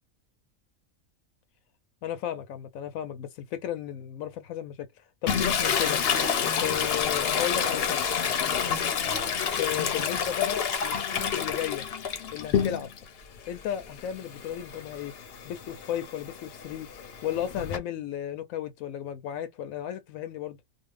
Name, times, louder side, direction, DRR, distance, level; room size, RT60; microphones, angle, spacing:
voice 1, 2.0-4.9 5.2-6.0 6.6-8.0 9.6-11.8 12.3-12.9 13.5-15.1 15.4-16.9 17.2-20.6, left 10 dB, 90° left, 1.0 m, -34 dB
Toilet flush, 5.3-13.1 13.5-17.8, left 7 dB, 60° left, 0.8 m, -29 dB
2.6 x 2.3 x 3.1 m
omnidirectional pair, 1.4 m